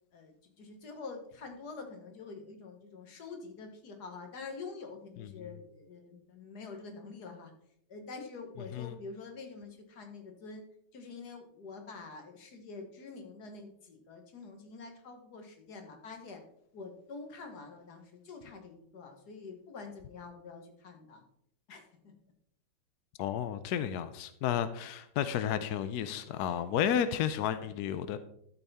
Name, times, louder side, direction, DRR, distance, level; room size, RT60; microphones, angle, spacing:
voice 1, 0.1-7.5 7.9-10.6 10.9-16.4 16.7-21.2 21.7-22.1, left 4 dB, 50° left, 1.8 m, -46 dB
voice 2, 23.2-28.2, left 9 dB, 85° left, 0.8 m, -32 dB
12.5 x 5.7 x 4.1 m
omnidirectional pair, 2.4 m